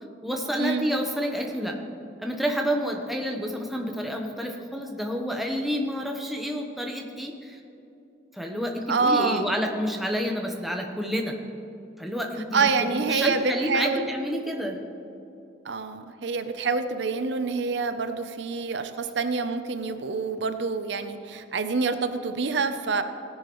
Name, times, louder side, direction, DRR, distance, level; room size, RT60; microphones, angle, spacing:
voice 1, 0.2-1.8 2.2-7.6 8.3-11.4 12.0-14.8, equal, ahead, 1 dB, 0.9 m, -29 dB
voice 2, 8.9-9.5 12.5-14.1 15.6-23.0, right 4 dB, 65° right, 9 dB, 0.6 m, -26 dB
17.0 x 10.0 x 3.1 m, 2.8 s
head